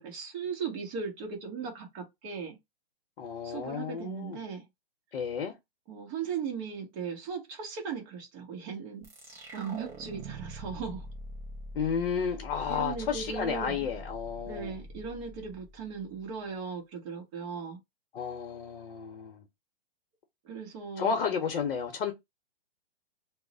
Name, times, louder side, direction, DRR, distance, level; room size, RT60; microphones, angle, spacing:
voice 1, 0.0-2.6 3.4-4.7 5.9-11.1 12.7-13.9 14.4-17.8 20.4-21.2, right 6 dB, 35° right, 0.9 m, -38 dB
voice 2, 3.2-4.4 5.1-5.5 11.7-14.8 18.1-19.4 21.0-22.1, left 6 dB, 65° left, 0.8 m, -32 dB
sound 1, 9.0-16.3, right 1 dB, 10° right, 0.4 m, -44 dB
2.3 x 2.1 x 3.8 m
hypercardioid pair, 145°, 30 cm